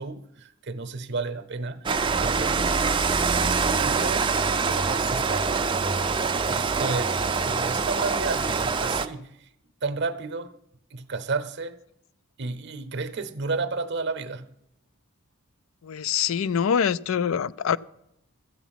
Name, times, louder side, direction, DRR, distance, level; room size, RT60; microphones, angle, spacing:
voice 1, 0.0-1.9 2.2-2.6 3.6-5.7 6.4-9.5 9.8-10.5 10.9-11.8 12.4-14.5, right 3 dB, 50° right, 0.7 m, -32 dB
Rain, 1.9-9.1, right 4 dB, 25° right, 0.4 m, -24 dB
voice 2, 15.8-17.8, left 7 dB, 65° left, 0.3 m, -24 dB
13.5 x 8.2 x 5.8 m
head